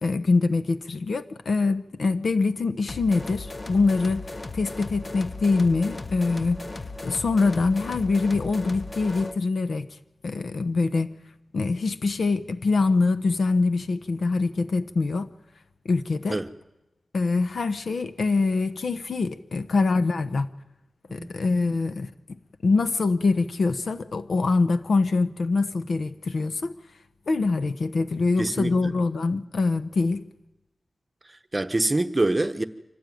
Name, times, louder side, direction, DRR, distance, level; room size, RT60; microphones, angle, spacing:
voice 1, 0.0-4.2 4.5-6.6 7.0-9.9 10.2-11.1 11.5-15.3 15.8-16.4 17.1-20.5 21.1-22.1 22.6-26.7 27.3-30.2, left 3 dB, 70° left, 1.1 m, -24 dB
sound 1, 2.9-9.4, left 2 dB, 35° left, 0.9 m, -37 dB
voice 2, 16.1-16.5 21.2-21.3 28.4-28.9 31.5-32.6, right 2 dB, 20° right, 1.1 m, -25 dB
25.0 x 18.0 x 9.4 m
wide cardioid pair, 120°, 0 cm